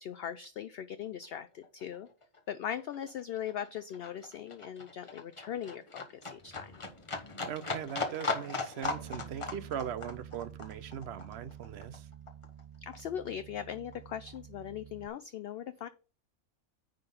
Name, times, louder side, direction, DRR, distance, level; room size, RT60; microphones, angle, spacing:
voice 1, 0.0-2.1 2.5-6.8 12.8-15.9, left 9 dB, 65° left, 0.6 m, -40 dB
Livestock farm animals working animals, 1.2-1.4 1.6-12.6 12.9-14.0 14.3-14.4, left 3 dB, 25° left, 1.1 m, -39 dB
voice 2, 7.5-12.1, right 9 dB, 60° right, 0.8 m, -40 dB
Bass guitar, 8.8-15.1, right 10 dB, 90° right, 0.3 m, -49 dB
9.8 x 3.9 x 5.2 m
omnidirectional pair, 1.4 m